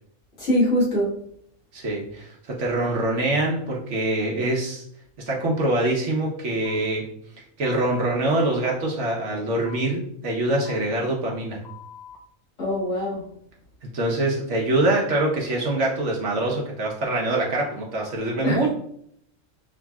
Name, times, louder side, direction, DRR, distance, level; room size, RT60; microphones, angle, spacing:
voice 1, 0.4-1.2 12.6-13.2 18.4-18.7, equal, 65° left, -8 dB, 2.0 m, -23 dB
voice 2, 1.7-4.8 5.3-7.0 7.6-11.6 13.8-18.7, right 2 dB, 65° right, -2 dB, 1.4 m, -24 dB
sound 1, 6.6-6.8 7.6-7.8 8.6-8.8 9.6-9.8 10.6-10.8 11.6-12.2, left 10 dB, 30° left, 0.4 m, -44 dB
6.1 x 3.1 x 2.3 m, 0.67 s
omnidirectional pair, 1.3 m